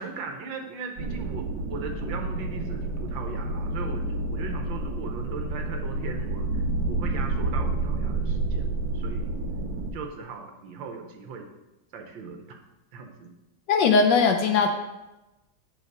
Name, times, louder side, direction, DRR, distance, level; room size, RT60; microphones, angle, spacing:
voice 1, 0.0-9.3 9.9-11.5 11.9-12.6 12.9-13.3, right 5 dB, 80° right, 3 dB, 1.5 m, -38 dB
sound 1, 1.0-9.9, right 2 dB, 60° right, 1.4 m, -29 dB
voice 2, 13.7-14.7, left 5 dB, 75° left, 5 dB, 1.2 m, -19 dB
8.0 x 4.1 x 6.5 m, 1.0 s
omnidirectional pair, 2.1 m